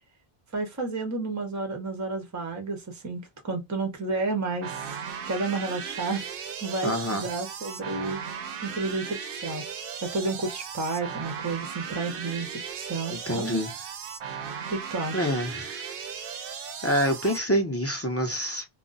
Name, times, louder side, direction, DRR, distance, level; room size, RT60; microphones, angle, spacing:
voice 1, 0.5-4.9 5.2-6.3 6.6-8.2 8.6-9.6 10.0-13.6 14.7-15.3, right 3 dB, 20° right, 0.6 m, -31 dB
sound 1, 4.6-17.4, right 7 dB, 65° right, 0.7 m, -37 dB
voice 2, 6.8-7.3 13.1-13.7 15.1-15.9 16.8-18.7, equal, 20° left, 0.4 m, -27 dB
2.4 x 2.1 x 3.8 m
omnidirectional pair, 1.0 m